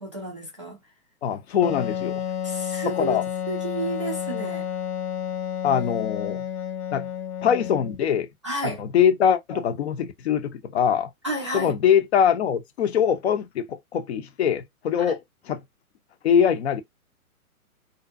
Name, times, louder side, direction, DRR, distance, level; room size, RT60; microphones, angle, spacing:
voice 1, 0.0-0.8 2.4-3.2 3.5-4.7 8.4-8.8 9.5-9.6 11.2-11.7, right 2 dB, 25° right, 0.3 m, -31 dB
voice 2, 1.2-2.2 2.8-3.2 5.6-6.4 6.9-7.1 7.4-8.3 8.6-11.1 11.5-15.2 15.5-15.6 16.2-16.8, left 8 dB, 50° left, 0.6 m, -23 dB
Wind instrument woodwind instrument, 1.6-8.1, left 9 dB, 85° left, 0.7 m, -31 dB
2.5 x 2.3 x 2.5 m
hypercardioid pair, 130°, 44 cm